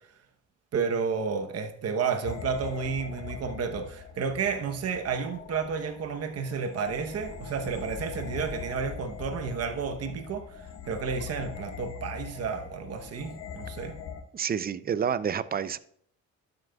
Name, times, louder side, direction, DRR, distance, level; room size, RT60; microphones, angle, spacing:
voice 1, 0.7-14.0, right 5 dB, 55° right, 1.0 m, -31 dB
sound 1, 2.2-14.2, left 6 dB, 60° left, 1.1 m, -41 dB
voice 2, 14.3-15.8, right 7 dB, 30° right, 0.5 m, -29 dB
12.0 x 7.9 x 2.3 m
cardioid pair, 90°, 30 cm